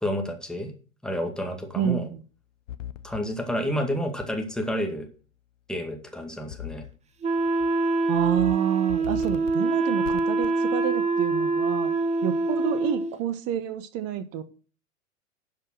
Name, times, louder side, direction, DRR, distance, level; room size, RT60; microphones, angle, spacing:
voice 1, 0.0-0.7 1.0-2.0 3.0-5.1 5.7-6.8, equal, ahead, 3 dB, 2.0 m, -29 dB
voice 2, 1.7-2.2 8.1-11.9 12.2-14.4, right 10 dB, 35° right, 12 dB, 1.2 m, -29 dB
sound 1, 2.7-3.2 4.2-4.3 6.5-7.0 7.4-7.7 8.1-8.5 8.9-9.5 10.0-10.5, left 11 dB, 65° left, 0.9 m, -37 dB
Wind instrument woodwind instrument, 7.2-13.1, right 3 dB, 15° right, 0.8 m, -25 dB
11.5 x 5.2 x 6.2 m, 0.39 s
figure-of-eight pair, 95°, 40 cm